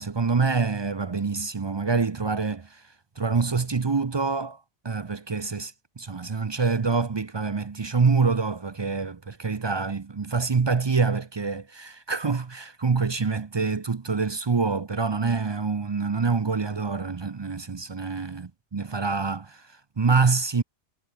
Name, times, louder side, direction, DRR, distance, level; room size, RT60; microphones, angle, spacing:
voice 1, 0.0-2.8 3.2-20.6, right 4 dB, 35° right, 0.4 m, -26 dB
omnidirectional pair, 1.2 m